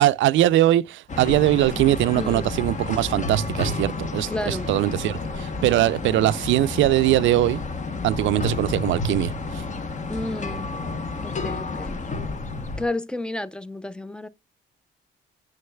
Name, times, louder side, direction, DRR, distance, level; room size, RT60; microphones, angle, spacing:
voice 1, 0.0-7.6 8.0-9.6, right 14 dB, 75° right, 0.4 m, -21 dB
sound 1, 1.1-12.9, left 3 dB, 40° left, 0.9 m, -30 dB
voice 2, 2.1-2.5 4.3-4.7 10.1-10.7 11.2-12.0 12.8-14.3, left 2 dB, 5° left, 0.4 m, -31 dB
Wind instrument woodwind instrument, 2.8-6.8, left 3 dB, 90° left, 4.6 m, -47 dB
7.0 x 6.4 x 2.2 m
cardioid pair, 90°, 20 cm